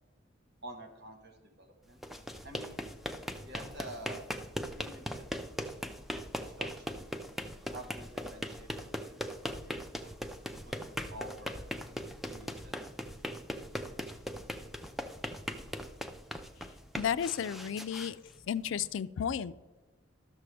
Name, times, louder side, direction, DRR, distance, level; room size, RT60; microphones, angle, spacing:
voice 1, 0.6-2.0 2.4-2.8 3.4-4.3 4.7-5.2 6.4-7.1 7.7-10.1 10.6-11.7 12.2-13.0, right 1 dB, 60° right, 4 dB, 1.4 m, -49 dB
sound 1, 1.9-18.9, equal, ahead, 0.5 m, -40 dB
voice 2, 17.0-18.2 18.5-19.5, left 8 dB, 75° left, 15 dB, 0.4 m, -33 dB
12.5 x 6.8 x 3.3 m, 1.2 s
head